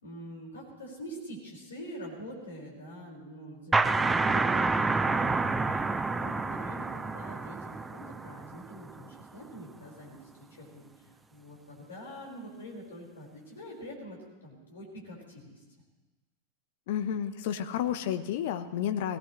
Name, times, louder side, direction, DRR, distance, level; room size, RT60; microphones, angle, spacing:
voice 1, 0.0-5.9 6.2-10.2 10.6-15.6, equal, 70° left, -2 dB, 5.4 m, -45 dB
sound 1, 3.7-9.1, right 3 dB, 10° right, 0.5 m, -28 dB
voice 2, 16.9-19.2, left 9 dB, 50° left, 10 dB, 1.0 m, -31 dB
22.0 x 18.0 x 3.3 m, 1.2 s
figure-of-eight pair, 90°, 0 cm